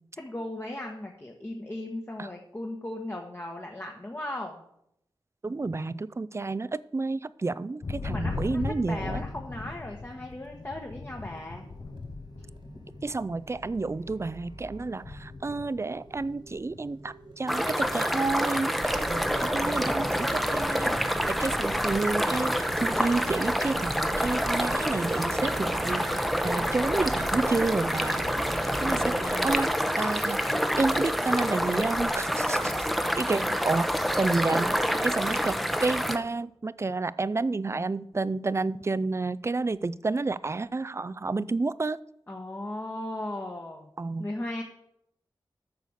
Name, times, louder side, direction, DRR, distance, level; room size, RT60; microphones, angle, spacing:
voice 1, 0.2-4.6 8.0-11.7 28.9-29.8 33.4-33.6 42.3-43.9 44.2-44.6, left 1 dB, 25° left, 1 dB, 1.2 m, -37 dB
voice 2, 5.4-9.2 13.0-20.9 21.3-26.0 26.4-28.2 28.8-29.7 30.0-30.4 30.8-32.9 33.2-33.9 34.2-42.0 44.0-44.3, right 3 dB, 30° right, 18 dB, 0.4 m, -30 dB
Thunder, 7.8-20.7 21.0-21.6 21.9-23.4, left 3 dB, 50° left, 0.7 m, -40 dB
sound 1, 10.9-29.8, right 2 dB, 65° right, 1.8 m, -40 dB
sound 2, 17.5-36.2, equal, ahead, 0.8 m, -27 dB
9.2 x 6.7 x 6.4 m, 0.76 s
wide cardioid pair, 75°, 9 cm